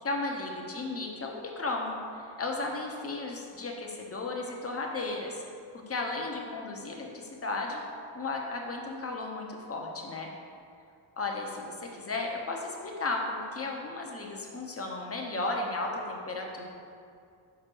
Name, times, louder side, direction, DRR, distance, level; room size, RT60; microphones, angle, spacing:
voice 1, 0.0-5.4 5.9-7.8 8.1-10.3 11.2-16.6, left 2 dB, 30° left, 1 dB, 0.8 m, -34 dB
6.2 x 5.7 x 4.5 m, 2.3 s
wide cardioid pair, 145°, 49 cm